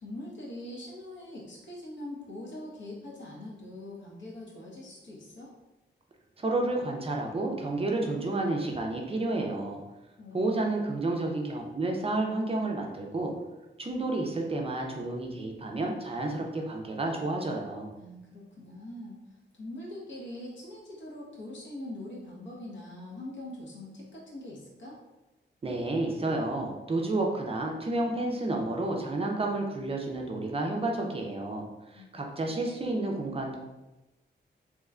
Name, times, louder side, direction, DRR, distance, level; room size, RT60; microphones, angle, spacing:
voice 1, 0.0-5.5 10.2-10.9 17.9-19.2 19.6-25.0 31.9-32.1 32.5-33.6, left 1 dB, 75° left, -4 dB, 1.0 m, -43 dB
voice 2, 6.4-9.8 10.3-13.3 13.8-17.9 25.6-31.7 31.9-33.6, right 2 dB, 30° right, 1 dB, 0.4 m, -30 dB
3.0 x 2.2 x 3.5 m, 1.0 s
wide cardioid pair, 160°, 19 cm